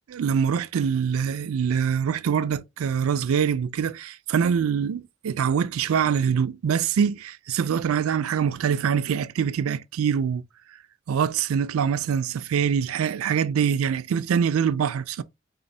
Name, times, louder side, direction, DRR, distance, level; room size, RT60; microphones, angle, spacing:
voice 1, 0.1-10.4 11.1-15.2, right 7 dB, 90° right, 0.4 m, -24 dB
4.1 x 3.1 x 2.6 m
head